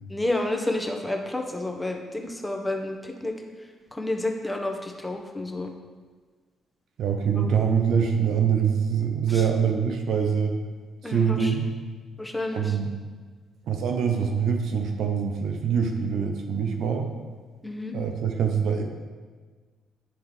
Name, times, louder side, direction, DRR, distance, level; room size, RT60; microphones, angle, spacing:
voice 1, 0.1-5.7 7.4-7.5 9.3-9.5 11.0-11.5 12.2-12.8 17.6-17.9, left 2 dB, 10° left, 2 dB, 0.9 m, -30 dB
voice 2, 7.0-10.6 11.1-11.6 12.5-13.0 13.7-17.1 17.9-18.8, right 7 dB, 65° right, 4 dB, 0.6 m, -24 dB
9.7 x 3.5 x 3.2 m, 1.5 s
hypercardioid pair, 50°, 0 cm